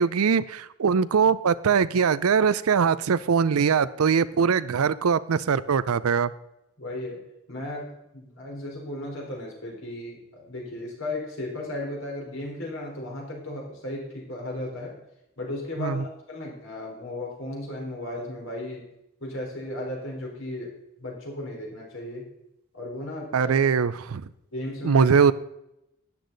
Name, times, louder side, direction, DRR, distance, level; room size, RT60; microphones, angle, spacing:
voice 1, 0.0-6.3 15.8-16.0 23.3-24.2 24.8-25.3, right 6 dB, 90° right, 17 dB, 0.5 m, -22 dB
voice 2, 6.8-7.2 7.5-15.0 15.4-18.8 19.2-20.7 21.0-22.3 22.7-23.6 24.5-25.1, left 1 dB, 65° left, -1 dB, 3.9 m, -35 dB
13.0 x 9.9 x 4.0 m, 0.85 s
head